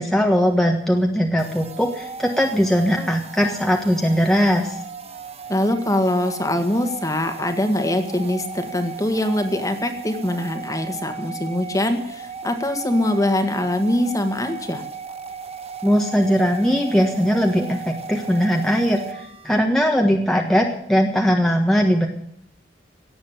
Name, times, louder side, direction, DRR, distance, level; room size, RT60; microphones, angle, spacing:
voice 1, 0.0-4.8 15.8-22.1, equal, 5° left, 0 dB, 1.4 m, -19 dB
sound 1, 1.4-19.6, right 5 dB, 35° right, 1.4 m, -36 dB
voice 2, 5.5-14.8, left 1 dB, 20° left, 7 dB, 1.8 m, -23 dB
17.5 x 7.8 x 8.9 m, 0.71 s
head